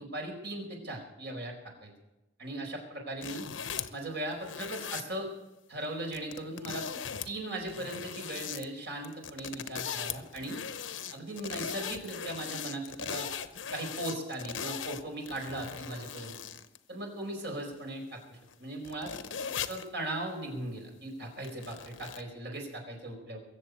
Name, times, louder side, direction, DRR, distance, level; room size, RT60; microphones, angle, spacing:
voice 1, 0.0-1.5 1.8-1.9 2.4-3.4 3.9-5.3 5.7-6.8 7.2-10.6 11.1-13.3 13.7-16.4 16.9-19.1 19.7-23.4, right 1 dB, 60° right, 2 dB, 4.8 m, -38 dB
sound 1, 3.2-4.0 4.4-5.0 6.1-7.3 7.6-8.6 9.0-16.8 17.4-17.5 18.5-18.6 18.8-19.9 21.4-22.2, left 7 dB, 75° left, 0.9 m, -39 dB
22.0 x 7.6 x 8.0 m, 0.98 s
head